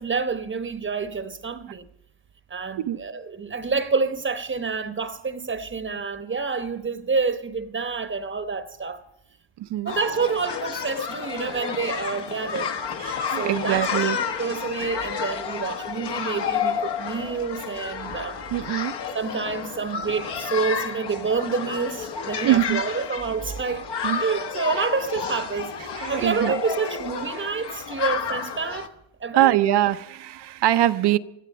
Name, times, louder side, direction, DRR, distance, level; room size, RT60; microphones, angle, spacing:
voice 1, 0.0-1.9 2.5-9.0 9.8-12.7 13.3-18.4 19.1-28.9 29.2-29.6, right 5 dB, 25° right, 1.0 m, -28 dB
voice 2, 9.6-9.9 13.0-14.2 18.5-18.9 22.4-22.8 24.0-24.2 24.8-24.9 26.0-26.5 27.3-27.4 29.3-31.2, right 13 dB, 60° right, 0.7 m, -23 dB
sound 1, 9.9-28.9, left 6 dB, 60° left, 1.5 m, -31 dB
17.0 x 13.0 x 5.3 m
cardioid pair, 115°, 46 cm